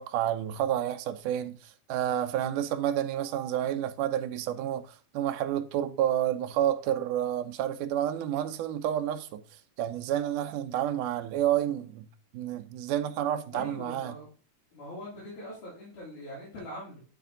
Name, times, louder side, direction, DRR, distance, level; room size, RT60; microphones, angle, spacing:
voice 1, 0.0-12.1 12.3-14.1, right 11 dB, 90° right, 2.2 m, -30 dB
voice 2, 13.5-14.3 14.7-17.0, left 1 dB, 70° left, 4.5 m, -42 dB
12.0 x 4.3 x 3.8 m
omnidirectional pair, 3.6 m